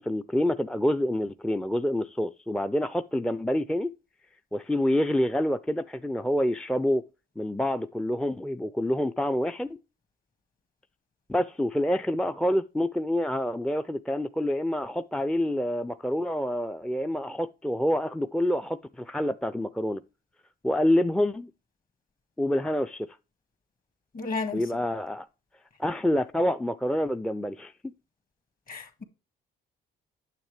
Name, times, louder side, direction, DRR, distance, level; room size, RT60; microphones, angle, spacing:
voice 1, 0.0-3.9 4.5-7.0 7.4-9.8 11.3-20.0 20.6-21.5 22.4-23.1 24.5-25.3 25.8-27.9, left 1 dB, 5° left, 0.4 m, -27 dB
voice 2, 24.1-24.8 28.7-29.0, left 4 dB, 45° left, 1.8 m, -33 dB
9.1 x 7.1 x 3.3 m
cardioid pair, 90°, 20 cm